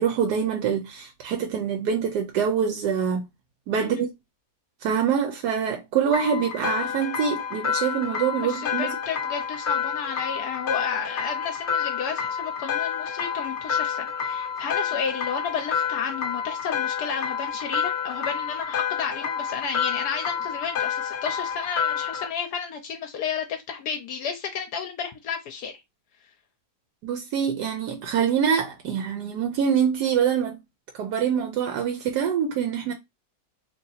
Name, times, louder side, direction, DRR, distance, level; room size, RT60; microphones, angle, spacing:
voice 1, 0.0-3.3 3.7-4.1 4.8-8.9 27.0-30.6 30.9-32.9, right 7 dB, 80° right, 1.2 m, -25 dB
sound 1, 6.1-22.3, left 7 dB, 55° left, 0.8 m, -29 dB
voice 2, 8.4-25.8, left 6 dB, 75° left, 1.1 m, -32 dB
2.9 x 2.7 x 3.9 m
omnidirectional pair, 1.7 m